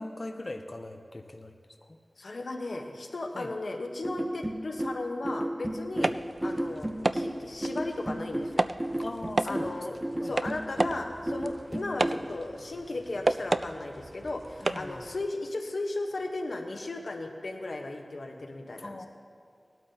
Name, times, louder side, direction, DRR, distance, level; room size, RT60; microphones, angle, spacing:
voice 1, 0.0-1.6 1.8-2.0 3.3-3.5 6.0-6.2 9.0-9.7 10.2-10.4 14.6-15.1 18.8-19.1, left 2 dB, 45° left, 4 dB, 0.7 m, -40 dB
voice 2, 2.2-6.1 6.4-8.7 9.4-19.1, left 2 dB, 85° left, 3 dB, 1.1 m, -36 dB
sound 1, 4.0-12.3, right 1 dB, 20° right, 1.0 m, -33 dB
sound 2, 5.9-15.3, right 2 dB, 55° right, 0.3 m, -33 dB
19.5 x 12.0 x 2.8 m, 2.2 s
wide cardioid pair, 50°, 0 cm